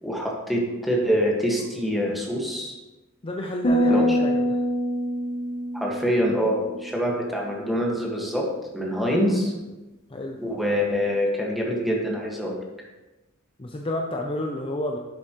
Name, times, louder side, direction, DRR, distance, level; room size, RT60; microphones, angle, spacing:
voice 1, 0.0-2.7 3.9-4.2 5.7-8.5 8.7-9.5 10.4-12.6, equal, ahead, -3 dB, 1.7 m, -25 dB
voice 2, 3.2-4.6 8.9-9.6 10.1-10.4 13.6-15.0, left 1 dB, 25° left, 1 dB, 0.6 m, -31 dB
sound 1, 3.6-7.1, equal, 45° left, 1.9 m, -25 dB
11.0 x 7.6 x 3.1 m, 1.1 s
head